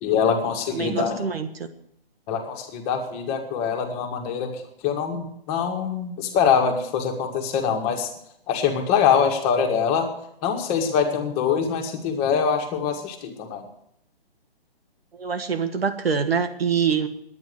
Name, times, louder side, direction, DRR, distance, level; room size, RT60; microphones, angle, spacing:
voice 1, 0.0-1.2 2.3-8.1 8.5-10.1 10.4-13.7, left 7 dB, 20° left, 3 dB, 1.9 m, -24 dB
voice 2, 0.7-1.7 15.1-17.1, right 6 dB, 75° right, 7 dB, 1.9 m, -25 dB
11.0 x 9.6 x 9.4 m, 0.73 s
hypercardioid pair, 145°, 30 cm